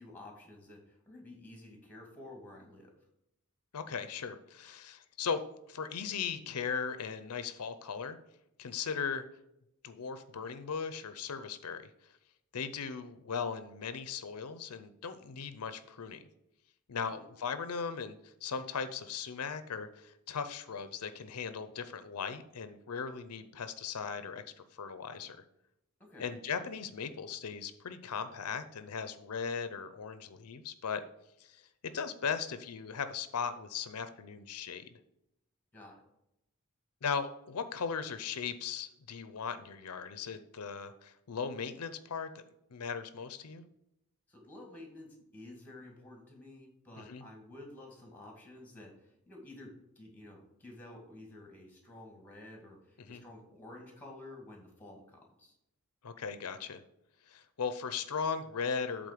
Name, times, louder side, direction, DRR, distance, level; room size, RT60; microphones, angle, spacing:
voice 1, 0.0-2.9 17.1-17.3 26.0-26.4 35.7-36.0 44.3-55.6, left 2 dB, 10° left, 1 dB, 2.0 m, -51 dB
voice 2, 3.7-5.4 5.7-8.2 8.6-9.3 9.8-11.9 12.5-16.2 16.9-24.4 24.7-25.4 26.2-31.0 31.4-35.0 37.0-42.4 42.7-43.6 47.0-47.2 53.1-53.2 56.0-56.8 57.3-59.1, left 6 dB, 90° left, 11 dB, 0.6 m, -38 dB
8.4 x 3.7 x 6.6 m, 0.83 s
head